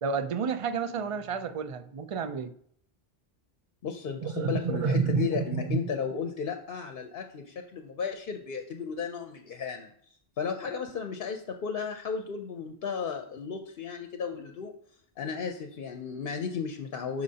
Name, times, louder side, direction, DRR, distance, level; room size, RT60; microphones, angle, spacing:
voice 1, 0.0-2.5 4.2-5.8, right 5 dB, 45° right, 0.4 m, -30 dB
voice 2, 3.8-9.9 10.4-14.7 15.2-17.2, left 6 dB, 65° left, 0.8 m, -34 dB
11.5 x 4.4 x 2.8 m
omnidirectional pair, 1.0 m